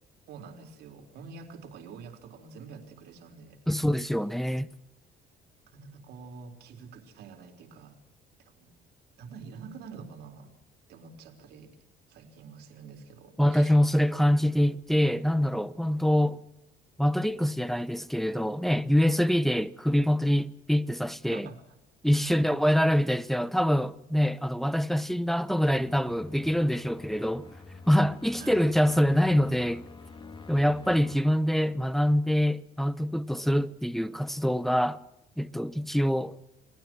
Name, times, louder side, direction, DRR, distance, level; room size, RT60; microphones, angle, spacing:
voice 1, 0.3-3.6 5.7-8.0 8.4-8.7 9.2-10.5 10.9-11.8 12.1-13.8 21.3-21.7 22.2-22.4 28.4-28.6, right 5 dB, 75° right, 3.8 m, -47 dB
voice 2, 3.7-4.7 13.4-16.4 17.0-21.5 22.0-27.5 27.9-29.8 30.5-35.0 35.4-36.4, equal, ahead, 1.0 m, -25 dB
sound 1, 25.7-31.2, left 4 dB, 30° left, 2.1 m, -48 dB
29.0 x 18.5 x 6.2 m
cardioid pair, 110°, 17 cm